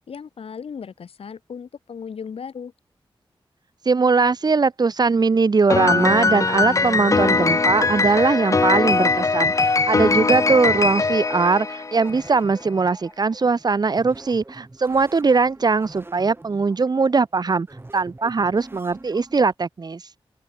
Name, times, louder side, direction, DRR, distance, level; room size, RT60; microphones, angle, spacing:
voice 1, 0.0-2.7, left 6 dB, 85° left, 2.1 m, -36 dB
voice 2, 3.8-17.7 17.9-20.1, right 4 dB, 45° right, 0.8 m, -20 dB
Piano, 5.7-12.2, left 4 dB, 35° left, 0.5 m, -21 dB
sound 1, 12.0-19.5, right 2 dB, 25° right, 3.2 m, -44 dB
open air
wide cardioid pair, 80°, 10 cm